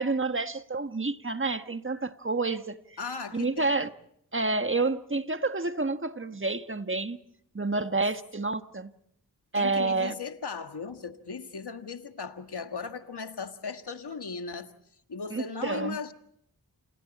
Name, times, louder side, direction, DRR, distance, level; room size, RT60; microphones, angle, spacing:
voice 1, 0.0-2.8 3.3-3.9 4.3-7.2 7.5-8.9 9.5-10.1 15.3-16.0, right 3 dB, 30° right, 1.4 m, -29 dB
voice 2, 3.0-3.8 7.7-8.0 9.5-14.7 15.1-16.1, left 5 dB, 80° left, 1.7 m, -37 dB
29.0 x 28.5 x 4.2 m
cardioid pair, 40°, 39 cm